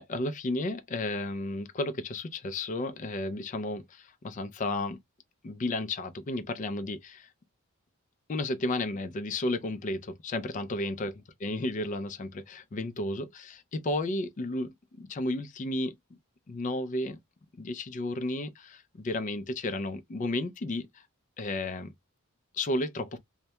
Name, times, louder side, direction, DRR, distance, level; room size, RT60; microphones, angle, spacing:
voice 1, 0.0-5.0 5.4-7.3 8.3-11.1 11.4-15.9 16.5-17.2 17.6-21.0 21.4-21.9 22.5-23.2, left 2 dB, 35° left, 0.3 m, -33 dB
2.2 x 2.1 x 2.7 m
head